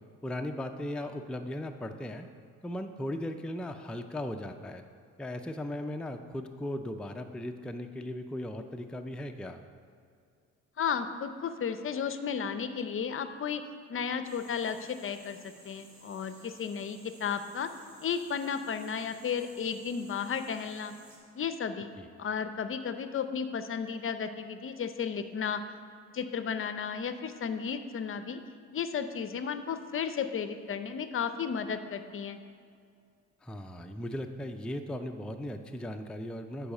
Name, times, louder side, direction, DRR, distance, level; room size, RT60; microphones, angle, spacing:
voice 1, 0.2-2.3 2.6-4.8 5.2-9.6 22.0-22.1 33.4-36.7, left 1 dB, 5° left, 5 dB, 0.4 m, -37 dB
voice 2, 10.8-13.6 13.9-17.7 18.0-20.9 21.4-21.9 22.2-25.8 26.1-28.4 28.7-32.4, left 6 dB, 45° left, 10 dB, 0.6 m, -34 dB
sound 1, 14.2-21.2, right 3 dB, 65° right, 2.6 m, -56 dB
10.0 x 4.8 x 6.5 m, 2.3 s
cardioid pair, 90°, 30 cm